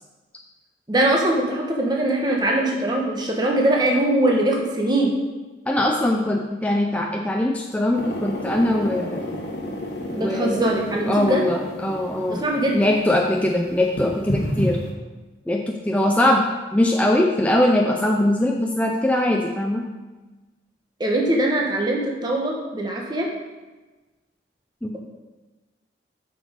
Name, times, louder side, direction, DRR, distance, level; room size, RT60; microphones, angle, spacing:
voice 1, 0.9-5.1 10.2-11.4 12.3-12.9 21.0-23.3, right 1 dB, 25° right, -1 dB, 1.1 m, -22 dB
voice 2, 5.7-9.2 10.1-10.7 11.1-12.4 12.7-14.8 15.5-19.8 24.8-25.0, left 1 dB, 10° left, 0 dB, 0.4 m, -21 dB
sound 1, 7.9-14.9, left 1 dB, 65° left, 1.2 m, -31 dB
7.7 x 5.2 x 5.0 m, 1.2 s
head